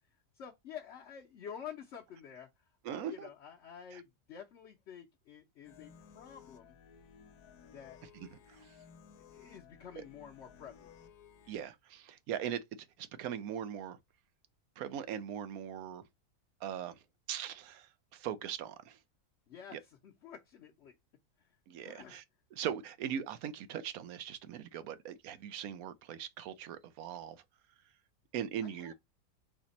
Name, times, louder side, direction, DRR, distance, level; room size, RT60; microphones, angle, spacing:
voice 1, 0.3-6.8 7.6-8.0 9.1-10.9 19.5-20.9 21.4-21.6 21.8-22.2 28.6-28.9, left 8 dB, 55° left, 0.9 m, -50 dB
voice 2, 2.8-3.3 3.9-4.0 8.5-8.7 10.0-10.1 11.5-12.6 13.0-14.0 14.8-16.0 16.6-17.0 17.3-19.0 19.7-19.8 21.7-22.2 22.6-27.4 28.3-28.9, right 9 dB, 75° right, 1.0 m, -40 dB
sound 1, 5.6-11.6, left 7 dB, 85° left, 1.2 m, -57 dB
4.2 x 2.9 x 4.0 m
omnidirectional pair, 1.6 m